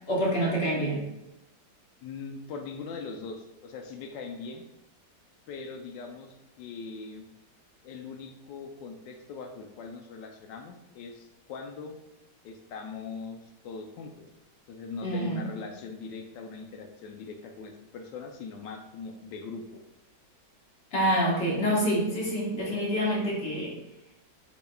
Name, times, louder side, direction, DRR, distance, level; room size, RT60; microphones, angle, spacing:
voice 1, 0.1-1.0 15.0-15.5 20.9-23.8, equal, 40° left, -3 dB, 1.4 m, -27 dB
voice 2, 2.0-4.6 5.5-7.2 7.8-11.9 12.4-13.4 13.6-14.3 14.7-19.8, left 4 dB, 90° left, 3 dB, 1.3 m, -41 dB
4.9 x 4.7 x 2.3 m, 0.92 s
omnidirectional pair, 1.9 m